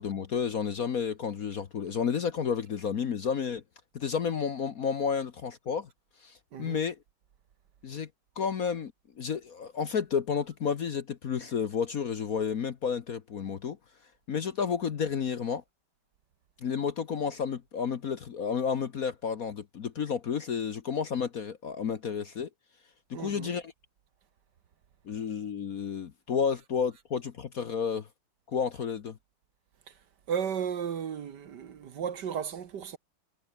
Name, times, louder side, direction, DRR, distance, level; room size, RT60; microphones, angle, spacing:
voice 1, 0.0-3.6 3.9-5.9 6.2-7.0 7.8-8.1 8.4-8.9 9.2-13.8 14.3-15.6 16.6-22.5 23.1-23.7 25.1-28.1 28.5-29.2, left 6 dB, 50° left, 1.3 m, -31 dB
voice 2, 23.1-23.5 30.3-33.0, right 7 dB, 55° right, 1.7 m, -34 dB
omnidirectional pair, 2.3 m